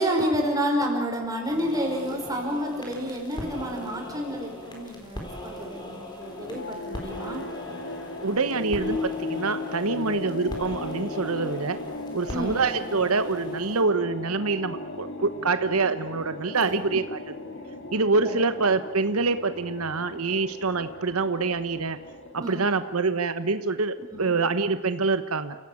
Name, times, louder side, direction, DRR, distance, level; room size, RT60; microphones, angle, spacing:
voice 1, 0.0-7.4 12.3-12.6 16.7-16.9 18.2-18.4 22.4-22.7 24.1-24.3, equal, 15° right, 1 dB, 5.0 m, -29 dB
sound 1, 1.4-13.8, left 1 dB, 20° left, 4.1 m, -40 dB
sound 2, 6.2-22.8, left 2 dB, 60° left, 2.3 m, -37 dB
voice 2, 8.2-11.8 12.1-17.3 17.9-22.0 22.3-25.6, right 4 dB, 85° right, 10 dB, 1.1 m, -26 dB
29.5 x 16.5 x 8.6 m, 1.3 s
head